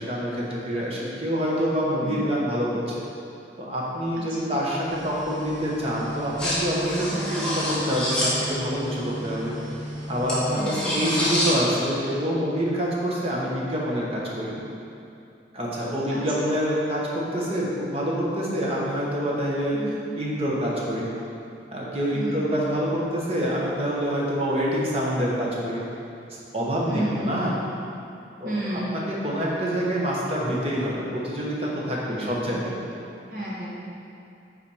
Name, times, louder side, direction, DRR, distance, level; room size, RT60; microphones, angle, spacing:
voice 1, 0.0-3.0 3.6-9.5 10.1-14.6 15.5-21.1 21.7-25.8 26.3-27.6 28.4-32.8, equal, 35° right, -5 dB, 1.0 m, -26 dB
voice 2, 4.1-4.5 7.1-7.4 10.6-11.1 16.1-16.2 19.7-20.1 22.1-22.5 26.9-27.6 28.4-29.0 32.2-32.7 33.3-33.8, right 1 dB, 50° right, -7 dB, 1.4 m, -33 dB
sound 1, 4.9-11.5, equal, 5° left, 1.1 m, -29 dB
5.6 x 4.2 x 4.8 m, 2.7 s
head